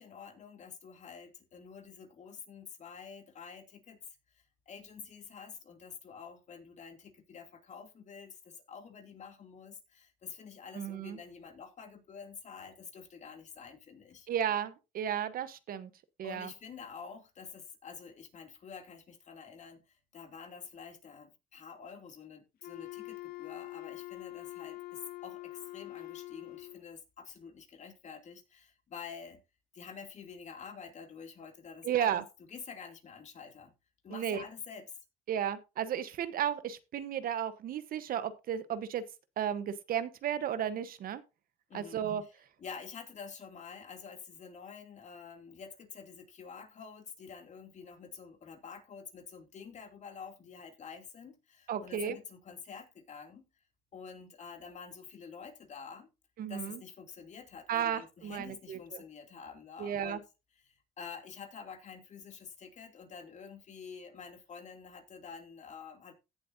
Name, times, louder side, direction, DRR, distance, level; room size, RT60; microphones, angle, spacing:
voice 1, 0.0-4.0 4.3-14.3 16.2-29.4 29.7-32.2 32.5-33.7 34.0-34.9 41.7-53.4 53.9-56.1 56.5-60.2 60.5-66.1, left 6 dB, 45° left, 2.8 m, -48 dB
voice 2, 10.7-11.2 14.3-15.9 16.2-16.5 31.8-32.2 34.1-34.4 35.3-39.0 39.4-41.2 41.7-42.2 51.7-52.2 56.4-56.8 57.7-58.8 59.8-60.2, right 9 dB, 60° right, 1.1 m, -33 dB
Wind instrument woodwind instrument, 22.6-26.9, left 20 dB, 65° left, 0.8 m, -45 dB
16.5 x 7.6 x 2.7 m
cardioid pair, 110°, 17 cm